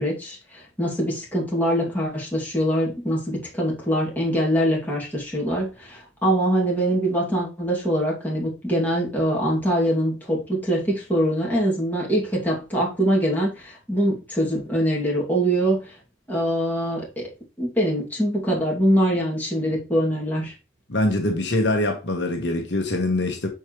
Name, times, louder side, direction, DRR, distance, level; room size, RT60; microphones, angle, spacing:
voice 1, 0.0-15.9 16.3-17.3 17.6-20.5, equal, 10° left, 2.4 m, -23 dB
voice 2, 20.9-23.5, left 1 dB, 65° left, 1.2 m, -23 dB
7.2 x 4.8 x 3.1 m
head